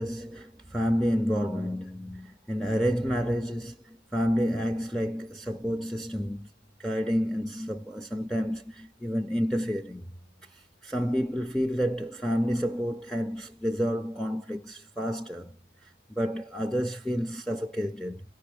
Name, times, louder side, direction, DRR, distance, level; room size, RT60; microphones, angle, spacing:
voice 1, 0.0-6.5 6.8-10.1 10.8-15.5 16.2-18.2, equal, ahead, 0.4 m, -29 dB
17.5 x 6.0 x 3.2 m
head